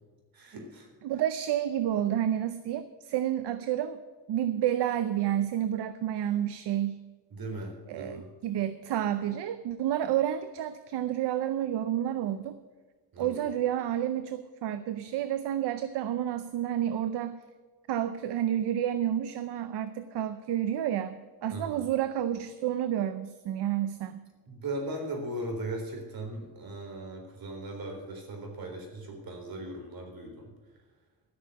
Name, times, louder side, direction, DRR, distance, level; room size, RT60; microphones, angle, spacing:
voice 1, 0.3-0.9 7.3-8.3 13.1-13.4 21.5-21.9 24.5-30.5, right 1 dB, 60° right, 2 dB, 3.9 m, -38 dB
voice 2, 1.0-4.0 4.3-7.0 7.9-12.6 13.2-17.4 17.9-24.2, right 11 dB, 75° right, 12 dB, 0.7 m, -30 dB
13.0 x 6.6 x 8.2 m, 1.4 s
cardioid pair, 105°, 41 cm